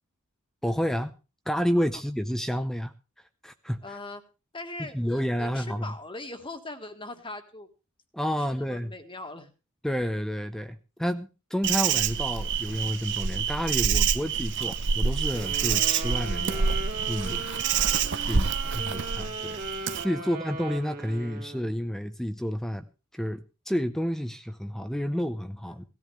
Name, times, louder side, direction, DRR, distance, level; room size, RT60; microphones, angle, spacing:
voice 1, 0.6-1.2 1.5-2.9 3.4-3.8 4.8-5.8 8.1-8.9 9.8-16.8 17.1-17.4 18.3-19.6 20.0-22.8 23.1-25.8, equal, ahead, 9 dB, 0.6 m, -30 dB
voice 2, 3.8-4.2 4.5-7.7 8.3-9.5 14.6-14.8 18.3-18.9 20.2-20.3 25.7-25.8, left 2 dB, 25° left, 7 dB, 1.7 m, -41 dB
Insect, 11.6-20.0, right 6 dB, 55° right, 0.8 m, -27 dB
Wind instrument woodwind instrument, 15.3-21.8, right 2 dB, 40° right, 2.2 m, -38 dB
18.0 x 14.0 x 3.4 m, 0.32 s
head